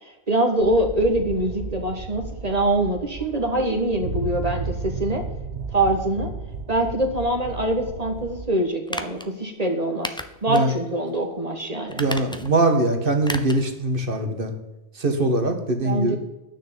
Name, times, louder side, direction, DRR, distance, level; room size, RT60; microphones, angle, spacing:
voice 1, 0.0-5.2 5.7-6.3 6.7-10.1 10.4-12.0 15.8-16.2, right 1 dB, 40° right, 2 dB, 1.5 m, -24 dB
sound 1, 0.6-8.5, right 4 dB, 85° right, 1.4 m, -34 dB
sound 2, 8.9-9.3 10.0-10.7 11.1-11.2 11.9-12.6 13.2-13.7 14.0-14.1, left 1 dB, 5° left, 0.7 m, -33 dB
voice 2, 12.0-14.5 15.0-16.2, right 2 dB, 55° right, 6 dB, 1.8 m, -22 dB
10.0 x 6.6 x 8.7 m, 0.98 s
omnidirectional pair, 1.1 m